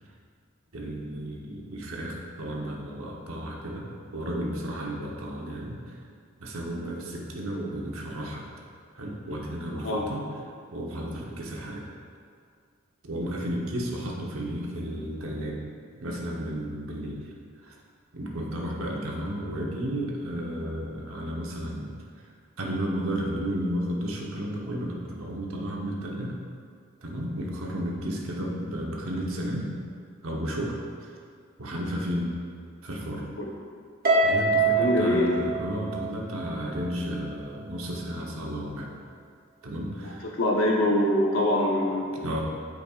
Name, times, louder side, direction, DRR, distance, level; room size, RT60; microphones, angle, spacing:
voice 1, 0.7-6.0 6.4-8.5 9.0-10.3 10.7-11.9 13.0-15.6 16.0-17.3 17.6-17.8 18.1-21.9 22.6-26.4 27.0-29.7 30.2-31.1 31.6-32.4 32.8-33.2 34.2-38.9 39.6-40.3 42.1-42.4, equal, 90° right, -1 dB, 1.0 m, -33 dB
Harp, 34.0-36.5, right 3 dB, 45° right, 0.8 m, -24 dB
voice 2, 34.8-35.3 40.3-42.1, left 1 dB, 70° left, -2 dB, 1.0 m, -23 dB
8.4 x 5.1 x 2.4 m, 2.2 s
head